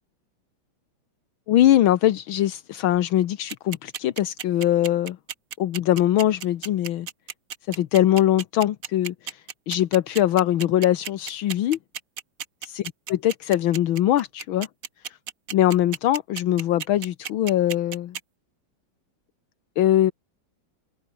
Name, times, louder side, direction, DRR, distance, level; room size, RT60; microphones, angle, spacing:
voice 1, 1.5-5.2 5.6-7.1 7.7-11.8 12.7-12.8 13.1-14.7 15.1-15.2 15.5-18.2 19.8-20.1, left 12 dB, 80° left, 1.8 m, -22 dB
sound 1, 3.5-18.2, right 8 dB, 50° right, 1.4 m, -34 dB
open air
omnidirectional pair, 2.2 m